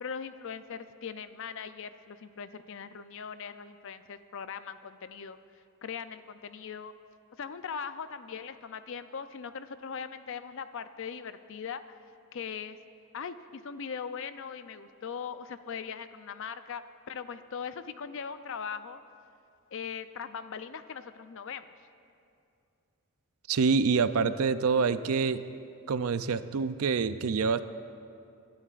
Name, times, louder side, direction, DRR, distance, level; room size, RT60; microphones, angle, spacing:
voice 1, 0.0-5.4 5.8-6.9 7.4-11.8 12.3-12.8 13.1-16.8 17.1-19.0 19.7-21.7, left 6 dB, 60° left, 11 dB, 0.5 m, -40 dB
voice 2, 23.5-25.4 25.9-27.6, right 5 dB, 70° right, 13 dB, 0.5 m, -26 dB
25.5 x 12.0 x 2.5 m, 2.5 s
head